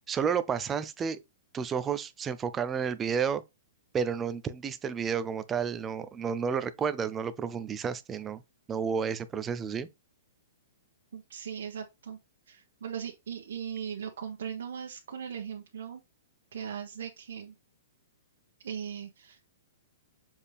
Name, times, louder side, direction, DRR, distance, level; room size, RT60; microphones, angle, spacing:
voice 1, 0.1-1.2 1.5-3.4 3.9-8.4 8.7-9.9, right 6 dB, 15° right, 0.5 m, -31 dB
voice 2, 11.1-12.2 12.5-16.0 16.5-17.5 18.6-19.4, right 8 dB, 75° right, 1.4 m, -39 dB
7.2 x 4.4 x 3.4 m
hypercardioid pair, 160°, 0 cm